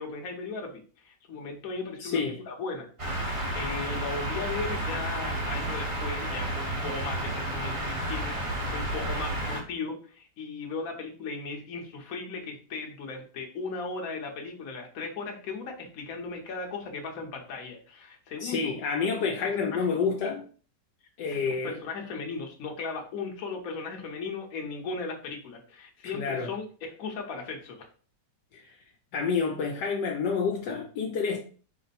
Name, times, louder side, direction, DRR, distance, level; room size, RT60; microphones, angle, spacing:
voice 1, 0.0-2.9 3.5-18.7 19.4-19.9 20.2-20.3 21.3-27.8, left 4 dB, 55° left, 1.3 m, -37 dB
voice 2, 2.0-2.4 18.4-20.4 21.2-21.8 26.1-26.5 28.5-28.7 29.1-31.4, left 5 dB, 75° left, 1.2 m, -28 dB
sound 1, 3.0-9.6, right 1 dB, 25° right, 0.7 m, -31 dB
5.2 x 2.1 x 4.1 m
omnidirectional pair, 1.9 m